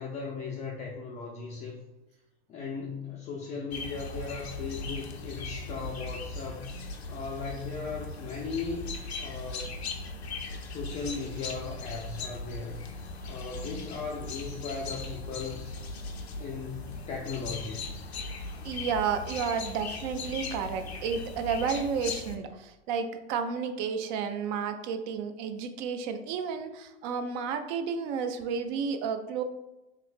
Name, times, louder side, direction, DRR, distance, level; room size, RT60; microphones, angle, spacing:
voice 1, 0.0-1.8 2.5-6.7 7.1-9.7 10.7-12.8 13.3-15.7 16.4-17.8, left 4 dB, 25° left, -1 dB, 0.3 m, -37 dB
sound 1, 3.7-22.4, left 3 dB, 85° left, 0.5 m, -39 dB
voice 2, 18.6-29.4, right 6 dB, 45° right, 8 dB, 0.4 m, -31 dB
3.1 x 3.0 x 2.5 m, 0.99 s
figure-of-eight pair, 85°, 31 cm